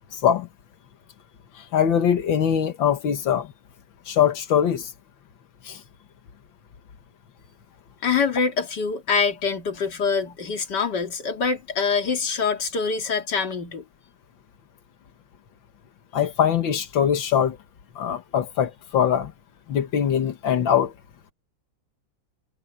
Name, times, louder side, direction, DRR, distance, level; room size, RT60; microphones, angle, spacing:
voice 1, 0.1-0.5 1.7-3.5 4.1-4.9 5.7-5.8 16.1-17.6 18.0-19.3 19.7-20.9, left 9 dB, 85° left, 2.1 m, -22 dB
voice 2, 8.0-13.8, left 5 dB, 60° left, 2.8 m, -25 dB
omnidirectional pair, 2.1 m